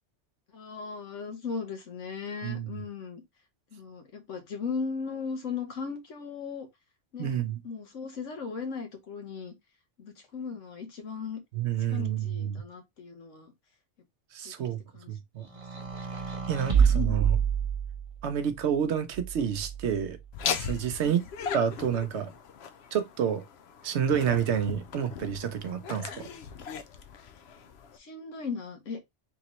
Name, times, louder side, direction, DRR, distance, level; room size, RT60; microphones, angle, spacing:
voice 1, 0.5-3.2 3.7-6.7 7.1-9.5 10.0-11.4 11.9-13.5 14.6-15.1 15.5-15.9 16.6-17.2 21.0-21.2 27.9-29.0, left 5 dB, 85° left, 1.4 m, -37 dB
voice 2, 2.4-2.7 7.2-7.6 11.5-12.6 14.3-14.8 15.1-15.5 16.5-17.4 18.2-20.2 20.5-21.2 21.5-22.3 22.9-23.4 23.8-26.3, right 8 dB, 70° right, 0.9 m, -29 dB
sound 1, 15.5-18.2 19.1-20.1, right 7 dB, 35° right, 0.7 m, -27 dB
Laughter, 20.3-28.0, left 7 dB, 65° left, 0.8 m, -38 dB
4.0 x 3.6 x 3.0 m
omnidirectional pair, 1.2 m